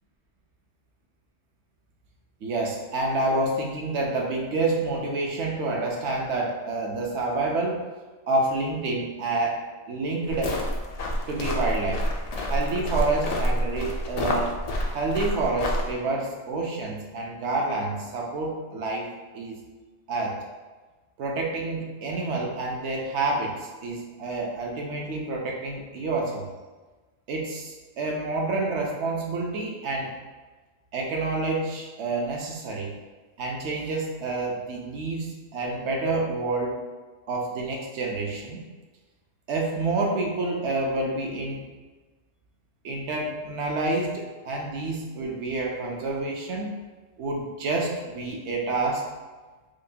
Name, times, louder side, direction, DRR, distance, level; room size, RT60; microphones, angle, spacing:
voice 1, 2.4-7.9 8.3-10.6 11.3-12.1 12.5-14.6 14.9-19.6 20.1-20.4 21.2-26.5 27.3-30.1 30.9-32.9 33.4-36.8 37.3-38.6 39.5-41.6 42.8-46.7 47.2-49.1, right 2 dB, 70° right, 0 dB, 0.9 m, -28 dB
sound 1, 10.3-15.9, equal, 85° left, 0.3 m, -28 dB
4.7 x 2.1 x 2.6 m, 1.3 s
omnidirectional pair, 1.2 m